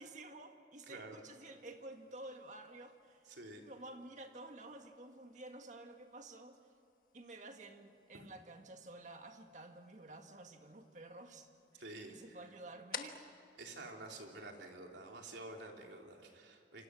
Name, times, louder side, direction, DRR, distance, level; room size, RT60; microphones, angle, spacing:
voice 1, 0.0-3.2 3.6-6.6 7.1-11.5 11.7-11.8 12.1-13.3, right 2 dB, 40° right, 5 dB, 1.8 m, -52 dB
voice 2, 0.9-1.2 3.3-3.6 11.7-12.4 13.6-16.8, right 2 dB, 80° right, 1 dB, 3.3 m, -49 dB
sound 1, 1.2-14.9, left 7 dB, 50° left, 1.5 m, -56 dB
27.5 x 25.0 x 6.3 m, 2.7 s
head